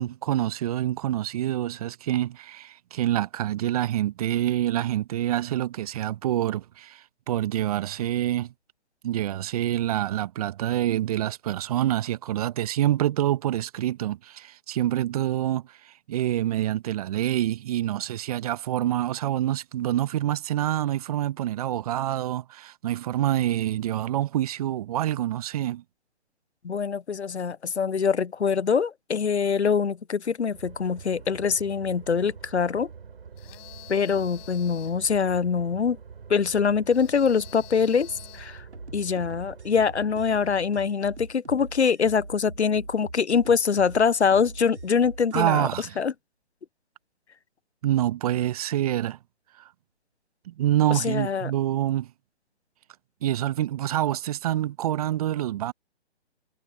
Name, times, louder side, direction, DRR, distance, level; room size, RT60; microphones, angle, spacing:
voice 1, 0.0-8.5 9.0-25.8 45.3-46.0 47.8-49.2 49.6-49.7 50.5-52.1 53.2-55.7, right 13 dB, 35° right, 1.1 m, -26 dB
voice 2, 26.6-32.9 33.9-36.0 36.3-38.6 38.9-45.7 46.0-46.1 50.9-51.5, left 6 dB, 90° left, 0.7 m, -24 dB
sound 1, 30.5-40.5, right 6 dB, 65° right, 5.0 m, -45 dB
sound 2, 33.4-35.1 36.9-38.6, left 39 dB, 25° left, 5.9 m, -48 dB
sound 3, 38.7-45.5, right 2 dB, 90° right, 6.1 m, -42 dB
figure-of-eight pair, 135°, 33 cm